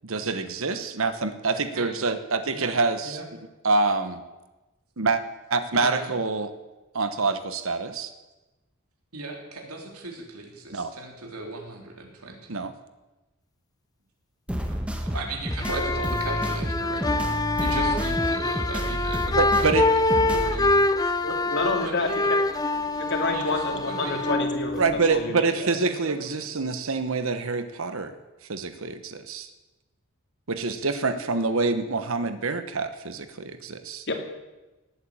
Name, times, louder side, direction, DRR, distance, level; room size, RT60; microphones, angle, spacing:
voice 1, 0.0-3.2 3.6-4.2 5.0-5.2 5.5-6.5 6.9-8.1 10.7-10.9 12.5-12.7 19.3-19.8 24.8-28.1 28.5-29.5 30.5-34.1, right 4 dB, 65° right, 10 dB, 1.1 m, -26 dB
voice 2, 5.7-6.2 9.1-12.5 14.7-17.1 17.6-22.3 22.8-22.9 23.3-24.4 25.5-26.5, right 2 dB, 85° right, 1 dB, 3.7 m, -37 dB
sound 1, 14.5-20.7, equal, 5° right, 1.4 m, -30 dB
sound 2, 15.5-25.3, left 2 dB, 15° left, 0.7 m, -25 dB
voice 3, 21.2-22.1 22.9-24.8 25.1-25.4 34.1-34.2, left 3 dB, 50° left, 4 dB, 2.7 m, -28 dB
18.5 x 9.0 x 8.7 m, 1.1 s
head